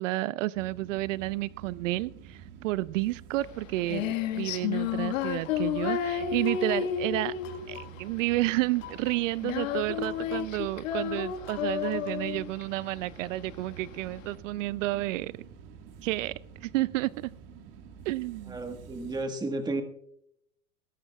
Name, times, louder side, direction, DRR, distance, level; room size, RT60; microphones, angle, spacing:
voice 1, 0.0-7.3 7.7-15.3 16.0-16.3 16.6-17.3 18.1-18.6, right 18 dB, 75° right, 19 dB, 0.5 m, -31 dB
sound 1, 0.5-19.2, right 7 dB, 50° right, 1.8 m, -49 dB
Female singing, 3.4-14.3, left 9 dB, 80° left, 1.7 m, -32 dB
sound 2, 5.2-5.7 6.4-6.9 7.4-8.0 8.8-9.2 10.0-10.7 11.5-12.3, left 9 dB, 65° left, 3.7 m, -47 dB
voice 2, 18.5-19.8, right 2 dB, 10° right, 6 dB, 1.5 m, -32 dB
17.5 x 14.0 x 2.3 m, 0.73 s
supercardioid pair, 140°, 39 cm